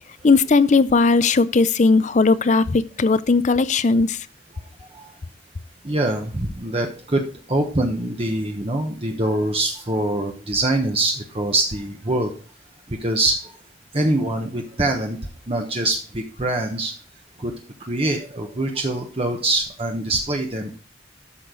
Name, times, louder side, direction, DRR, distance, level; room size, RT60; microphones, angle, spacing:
voice 1, 0.2-4.3, left 4 dB, 40° left, 0.5 m, -17 dB
voice 2, 5.8-12.3 12.9-13.5 13.9-15.2 15.5-16.9 17.4-17.5 17.8-20.8, right 2 dB, 30° right, 1.1 m, -24 dB
12.5 x 6.6 x 3.9 m
head